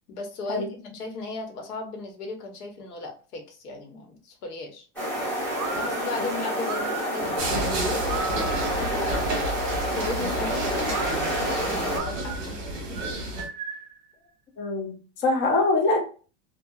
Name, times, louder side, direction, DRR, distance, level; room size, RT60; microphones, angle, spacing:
voice 1, 0.1-4.9 5.7-9.0 9.9-12.6 12.9-13.0, left 3 dB, 80° left, 3 dB, 1.1 m, -36 dB
sound 1, 5.0-12.0, right 1 dB, 5° left, 1.2 m, -28 dB
sound 2, 5.5-8.9 10.9-14.0, right 6 dB, 65° right, 0.6 m, -36 dB
sound 3, 7.4-13.5, right 1 dB, 35° right, 1.2 m, -31 dB
voice 2, 14.6-16.0, left 3 dB, 25° left, 0 dB, 0.4 m, -24 dB
2.8 x 2.2 x 2.4 m, 0.37 s
supercardioid pair, 150°, 45 cm